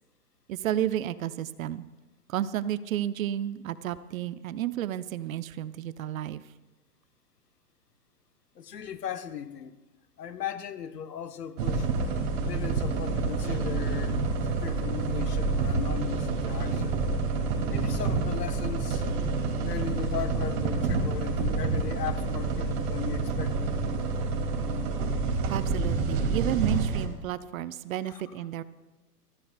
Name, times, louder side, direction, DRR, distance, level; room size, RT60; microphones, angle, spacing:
voice 1, 0.5-1.9 2.3-6.4 25.5-28.6, right 12 dB, 55° right, 0.7 m, -32 dB
voice 2, 8.5-9.8 10.2-11.9 12.4-17.0 17.7-19.0 19.6-23.8 28.1-28.2, left 9 dB, 80° left, 1.0 m, -37 dB
sound 1, 11.6-27.1, right 3 dB, 40° right, 2.4 m, -28 dB
22.5 x 14.0 x 2.2 m
hypercardioid pair, 120°, 48 cm